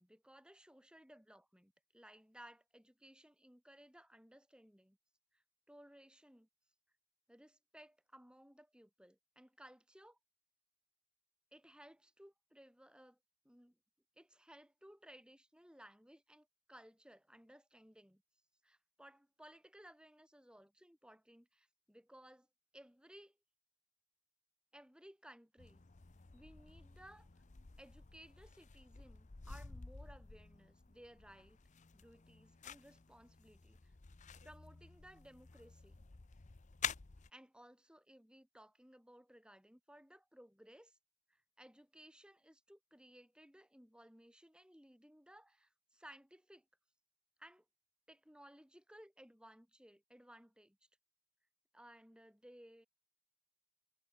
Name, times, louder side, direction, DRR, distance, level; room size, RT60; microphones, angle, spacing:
voice 1, 0.0-5.0 5.3-6.5 7.3-10.2 11.5-13.2 13.4-13.8 14.2-18.2 18.6-22.5 22.7-23.4 24.7-25.8 26.3-27.4 27.8-31.6 31.9-33.9 34.4-36.1 37.3-41.0 41.3-46.7 47.4-47.6 48.1-50.8 51.7-52.9, equal, 5° right, 2.9 m, -60 dB
sound 1, 25.6-37.3, left 7 dB, 30° left, 0.7 m, -50 dB
head